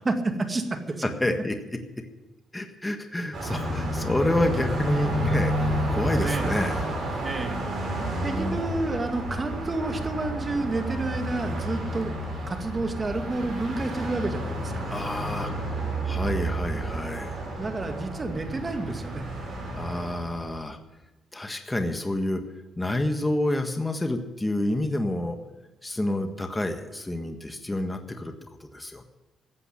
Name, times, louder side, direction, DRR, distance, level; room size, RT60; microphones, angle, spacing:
voice 1, 0.0-1.1 6.2-6.5 7.2-12.2 12.5-14.8 17.6-19.2, right 2 dB, 30° right, 5 dB, 2.0 m, -30 dB
voice 2, 1.0-2.0 2.5-5.5 5.9-6.8 8.0-8.6 14.9-15.5 16.0-17.4 19.7-20.8 21.3-22.4 22.8-25.4 25.8-28.3 28.6-29.0, left 1 dB, 15° left, 5 dB, 1.5 m, -28 dB
Car passing by, 3.3-20.5, right 1 dB, 50° right, 7.3 m, -30 dB
14.5 x 8.4 x 10.0 m, 1.1 s
cardioid pair, 90°, 0 cm